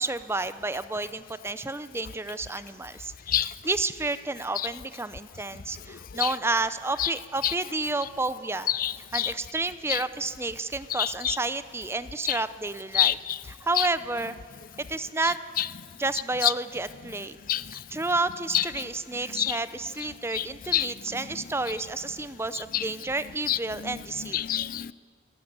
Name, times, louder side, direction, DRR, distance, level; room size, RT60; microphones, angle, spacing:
voice 1, 0.0-8.7 9.1-13.2 13.4-14.4 14.9-15.4 16.0-17.4 17.7-24.4, right 3 dB, 10° right, 13 dB, 0.6 m, -30 dB
voice 2, 8.7-9.3 9.9-10.0 11.0-11.4 12.3-12.4 12.9-13.1 13.8-13.9 16.4-16.5 17.5-17.8 18.5-18.6 19.4-19.6 20.3-20.4 20.7-20.9 22.7-22.8 23.5-23.6 23.8-23.9 24.3-24.9, left 12 dB, 45° left, 18 dB, 0.4 m, -25 dB
28.5 x 12.5 x 8.1 m, 2.1 s
head